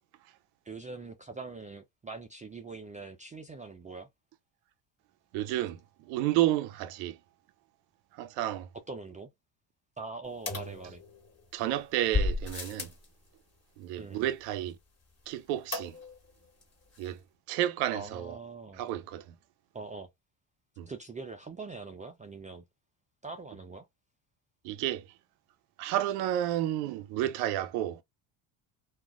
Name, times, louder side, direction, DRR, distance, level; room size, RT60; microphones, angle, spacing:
voice 1, 0.6-4.1 8.9-9.3 10.0-11.0 14.0-14.3 17.9-18.8 19.7-20.1 20.9-22.7 23.2-23.9, right 4 dB, 20° right, 0.3 m, -43 dB
voice 2, 5.3-7.2 8.1-8.7 11.5-12.9 13.8-14.8 15.3-16.0 17.0-17.2 17.5-18.4 18.8-19.2 20.8-20.9 24.6-25.0 25.8-28.0, right 13 dB, 90° right, 0.6 m, -31 dB
sound 1, 10.5-11.4 12.1-13.1 15.7-16.3 16.6-16.7 16.9-17.0, left 3 dB, 30° left, 1.3 m, -33 dB
2.4 x 2.1 x 3.5 m
supercardioid pair, 85°, 48 cm